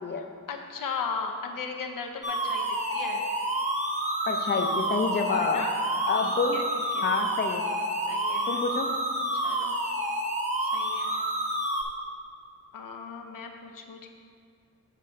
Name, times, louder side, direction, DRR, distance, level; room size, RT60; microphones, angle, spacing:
voice 1, 0.2-3.3 5.4-5.7 6.2-7.2 8.0-8.6 9.3-9.8 10.6-11.1 12.7-14.1, left 5 dB, 85° left, 3 dB, 0.8 m, -37 dB
sound 1, 2.2-11.8, right 1 dB, 20° right, 0.9 m, -29 dB
voice 2, 4.3-5.6 6.1-6.6 7.0-7.6 8.5-8.9, left 4 dB, 35° left, 4 dB, 0.6 m, -27 dB
7.5 x 4.5 x 5.2 m, 2.2 s
wide cardioid pair, 90°, 32 cm